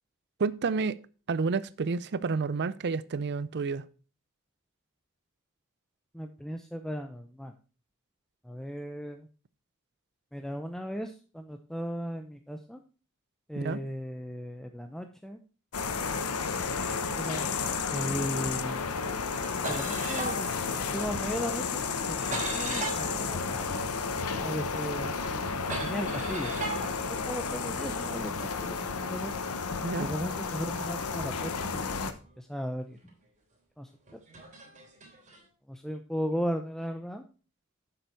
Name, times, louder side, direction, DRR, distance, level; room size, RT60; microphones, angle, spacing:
voice 1, 0.4-1.0 1.3-3.8 13.6-13.8 29.8-30.1, right 4 dB, 50° right, 0.5 m, -30 dB
voice 2, 6.1-7.5 8.4-9.3 10.3-12.8 13.5-15.4 17.2-17.5 17.9-18.8 19.7-20.5 20.8-22.2 22.4-23.8 24.4-25.1 25.8-26.5 27.1-29.3 30.0-33.0 33.8-33.9 35.7-37.2, equal, ahead, 0.5 m, -36 dB
sound 1, 15.7-32.1, left 5 dB, 85° left, 0.9 m, -32 dB
sound 2, 18.1-18.9 19.1-24.4 24.7-28.0 28.7-32.3 32.9-33.1 34.1-35.4, right 3 dB, 35° right, 3.2 m, -41 dB
7.9 x 6.9 x 4.5 m
head